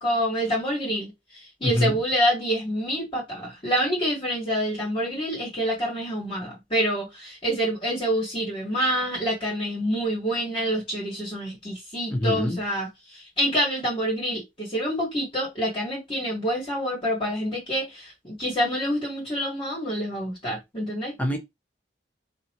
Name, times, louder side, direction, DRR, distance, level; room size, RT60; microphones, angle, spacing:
voice 1, 0.0-1.1 1.6-21.1, equal, 30° left, 1.6 m, -27 dB
voice 2, 1.6-2.0 12.1-12.6 21.2-21.4, left 1 dB, 10° left, 0.9 m, -24 dB
4.2 x 2.7 x 2.9 m
head